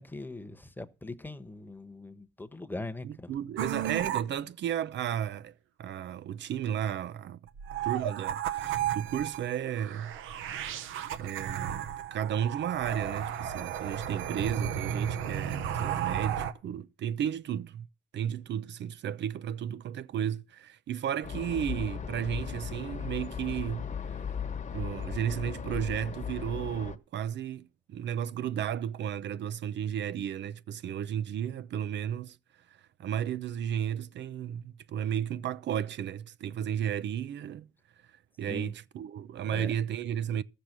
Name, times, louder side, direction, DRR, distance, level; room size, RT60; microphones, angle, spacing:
voice 1, 0.0-3.3 38.5-38.7 39.5-39.7, left 2 dB, 10° left, 1.1 m, -41 dB
voice 2, 3.0-5.5 5.8-7.4 7.8-10.7 11.1-17.9 18.1-24.2 24.7-32.4 33.0-37.7 38.4-40.4, right 9 dB, 65° right, 0.6 m, -33 dB
sound 1, 3.6-4.2 7.5-16.5, right 10 dB, 85° right, 1.0 m, -34 dB
sound 2, 21.2-27.0, left 7 dB, 35° left, 1.2 m, -37 dB
13.5 x 6.7 x 6.0 m
cardioid pair, 90°, 20 cm